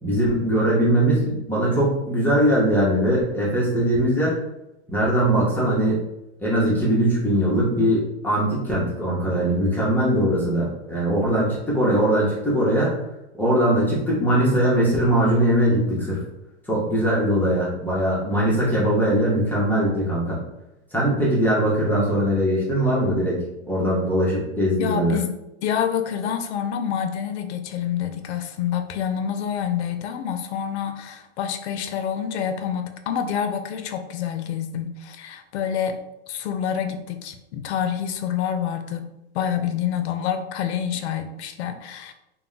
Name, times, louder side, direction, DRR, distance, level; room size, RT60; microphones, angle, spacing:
voice 1, 0.0-4.4 4.9-6.0 6.4-13.0 13.3-16.2 16.7-20.4 20.9-25.2, right 1 dB, 5° left, -7 dB, 0.7 m, -21 dB
voice 2, 24.8-25.3 25.6-36.0 36.3-42.1, left 8 dB, 70° left, 7 dB, 0.5 m, -27 dB
2.2 x 2.1 x 3.8 m, 0.90 s
hypercardioid pair, 130°, 35 cm